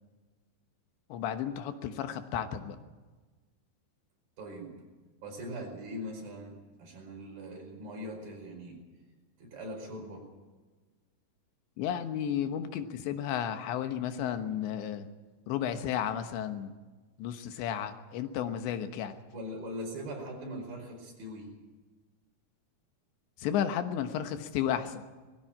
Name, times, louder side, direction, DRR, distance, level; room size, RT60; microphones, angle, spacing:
voice 1, 1.1-2.8 11.8-15.1 15.5-16.7 17.2-19.1 23.4-25.0, left 9 dB, 90° left, 8 dB, 3.5 m, -33 dB
voice 2, 4.4-4.8 5.2-8.8 9.4-10.3 19.3-21.5, equal, 55° right, 1 dB, 6.7 m, -41 dB
20.5 x 15.5 x 8.8 m, 1.3 s
omnidirectional pair, 5.0 m